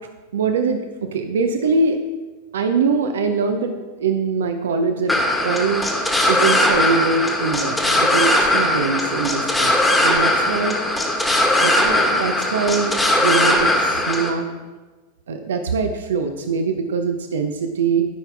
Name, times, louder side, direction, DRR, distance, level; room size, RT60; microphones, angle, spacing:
voice 1, 0.3-2.0 2.5-5.8 6.3-10.8 11.6-14.5 15.3-18.0, right 4 dB, 65° right, 6 dB, 0.6 m, -23 dB
sound 1, 5.1-14.3, left 1 dB, 5° left, 1.4 m, -19 dB
12.5 x 5.7 x 3.4 m, 1.2 s
figure-of-eight pair, 90°, 0 cm